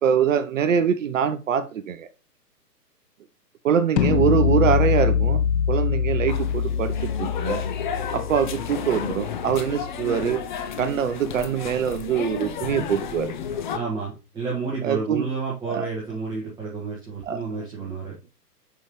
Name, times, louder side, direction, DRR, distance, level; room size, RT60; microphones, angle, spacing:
voice 1, 0.0-2.1 3.6-5.4 5.7-7.6 8.1-10.4 10.8-13.3 14.8-15.3 15.6-15.9 17.2-17.4, right 8 dB, 50° right, 11 dB, 0.7 m, -23 dB
sound 1, 4.0-9.9, left 7 dB, 80° left, 0.7 m, -24 dB
sound 2, 6.3-13.8, left 7 dB, 30° left, 0.6 m, -32 dB
voice 2, 13.7-18.2, right 4 dB, 10° right, -5 dB, 1.7 m, -30 dB
6.4 x 5.6 x 3.1 m, 0.29 s
figure-of-eight pair, 130°, 49 cm